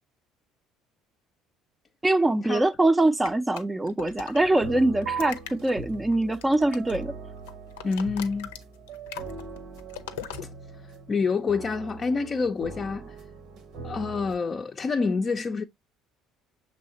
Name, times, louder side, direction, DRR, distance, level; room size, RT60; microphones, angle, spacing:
voice 1, 2.0-7.1, right 2 dB, 15° right, 0.5 m, -23 dB
sound 1, 3.3-4.6 5.0-7.1 7.4-10.4, left 10 dB, 85° left, 0.5 m, -41 dB
sound 2, 4.3-14.3, right 4 dB, 65° right, 1.1 m, -42 dB
sound 3, 5.1-12.0, right 7 dB, 80° right, 0.6 m, -43 dB
voice 2, 7.8-8.5 10.4-10.5 11.1-13.2 13.8-15.6, left 4 dB, 35° left, 0.5 m, -27 dB
6.0 x 3.2 x 2.8 m
hypercardioid pair, 70°, 0 cm